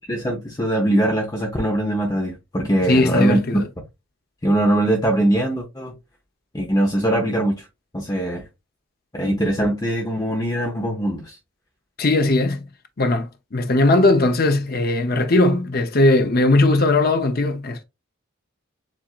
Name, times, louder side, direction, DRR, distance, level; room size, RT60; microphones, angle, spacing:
voice 1, 0.1-3.6 4.4-5.9 6.5-7.7 7.9-8.4 9.1-11.4, right 1 dB, 20° left, 0.8 m, -21 dB
voice 2, 2.9-3.7 12.0-12.7 13.0-17.8, left 2 dB, 45° left, 0.7 m, -18 dB
7.4 x 2.7 x 2.4 m
head